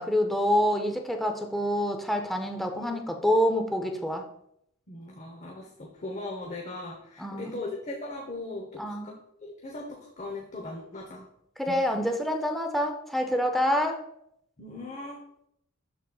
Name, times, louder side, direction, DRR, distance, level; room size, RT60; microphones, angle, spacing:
voice 1, 0.0-4.2 7.2-7.6 8.8-9.1 11.6-14.0, equal, ahead, 3 dB, 0.5 m, -27 dB
voice 2, 4.9-11.2 11.7-11.8 14.6-15.2, left 2 dB, 35° left, 0 dB, 0.8 m, -39 dB
11.5 x 4.0 x 2.3 m, 0.74 s
head